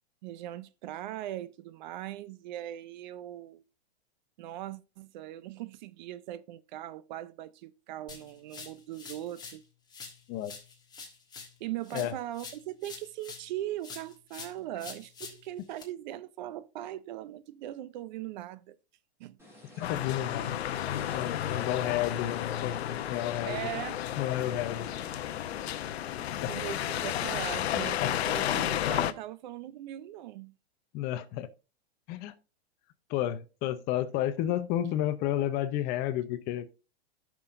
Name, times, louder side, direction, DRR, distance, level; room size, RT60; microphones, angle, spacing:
voice 1, 0.2-3.6 4.4-9.6 11.6-18.8 19.2-19.4 23.4-24.1 26.5-30.6, right 13 dB, 45° right, 0.5 m, -40 dB
sound 1, 8.1-9.6 9.9-13.5 13.8-15.8, left 5 dB, 10° left, 1.4 m, -47 dB
sound 2, 19.4-27.4, left 1 dB, 5° right, 3.2 m, -52 dB
sound 3, 19.8-29.1, left 11 dB, 70° left, 0.8 m, -32 dB
voice 2, 19.8-20.6 21.1-22.8 23.1-23.6 24.2-24.9 26.4-26.5 28.0-28.1 30.9-31.5 32.1-32.3 33.1-36.7, left 12 dB, 30° left, 0.6 m, -31 dB
13.5 x 6.0 x 2.5 m
hypercardioid pair, 140°, 32 cm